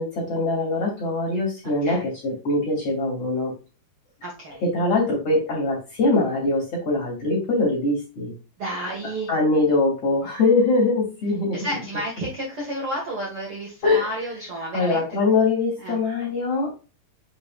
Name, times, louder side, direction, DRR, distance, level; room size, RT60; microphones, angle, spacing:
voice 1, 0.0-3.5 4.6-8.4 9.0-11.6 13.8-14.3 14.7-16.8, left 3 dB, 35° left, -2 dB, 3.1 m, -23 dB
voice 2, 4.2-4.6 8.6-9.3 11.5-15.0 15.8-16.0, right 1 dB, 80° right, -4 dB, 1.2 m, -31 dB
7.7 x 5.4 x 2.5 m, 0.32 s
omnidirectional pair, 5.8 m